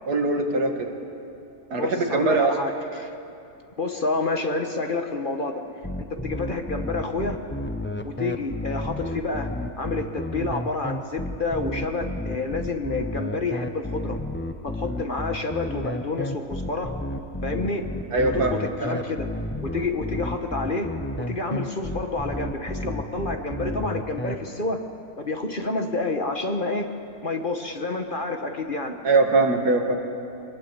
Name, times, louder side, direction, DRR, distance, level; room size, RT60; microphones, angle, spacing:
voice 1, 0.1-0.9 1.7-2.5 18.1-18.5 18.8-19.0 29.0-30.0, right 3 dB, 80° right, 3 dB, 2.4 m, -22 dB
voice 2, 1.8-3.1 3.8-5.7 6.0-7.4 8.0-9.5 9.8-14.2 14.6-16.9 17.4-17.9 18.2-19.3 19.6-20.9 21.2-24.8 25.2-26.9 27.2-28.9, left 3 dB, 35° left, 4 dB, 1.5 m, -29 dB
sound 1, 5.8-24.3, left 1 dB, 10° left, 0.6 m, -31 dB
24.5 x 21.0 x 8.1 m, 2.7 s
omnidirectional pair, 1.6 m